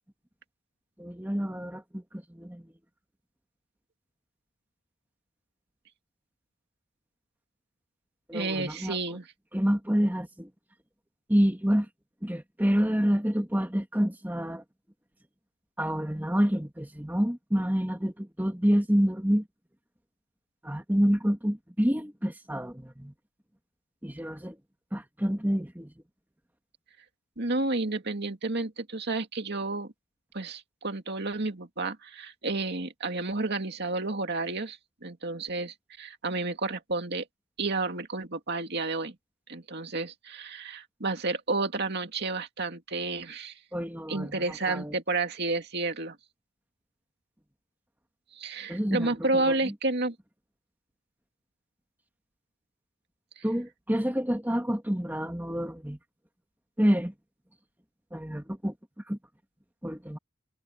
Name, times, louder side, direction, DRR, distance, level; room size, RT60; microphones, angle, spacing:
voice 1, 1.0-2.7 8.3-9.0 9.5-10.5 11.3-11.9 12.2-14.6 15.8-19.5 20.6-23.1 24.0-24.6 24.9-25.9 43.7-45.0 48.7-49.7 53.4-56.0 56.8-57.1 58.1-58.8 59.1-59.2 59.8-60.2, equal, 10° right, 1.9 m, -28 dB
voice 2, 8.3-9.3 27.4-29.9 30.3-37.2 37.6-39.2 39.5-43.5 44.1-46.2 48.3-50.2 53.4-53.5, right 3 dB, 50° right, 2.3 m, -31 dB
head